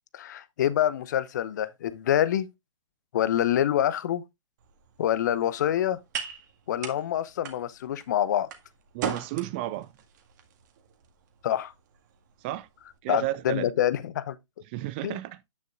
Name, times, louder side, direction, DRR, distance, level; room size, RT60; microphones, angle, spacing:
voice 1, 0.1-2.5 3.1-4.2 5.0-6.0 6.7-8.5 11.4-11.7 13.1-14.4 15.0-15.2, left 11 dB, 35° left, 0.7 m, -26 dB
sound 1, 4.6-13.0, right 7 dB, 35° right, 1.8 m, -41 dB
voice 2, 8.9-9.9 12.4-12.7 13.0-13.7 14.7-15.4, right 14 dB, 20° right, 0.5 m, -32 dB
9.6 x 9.0 x 2.5 m
figure-of-eight pair, 130°, 16 cm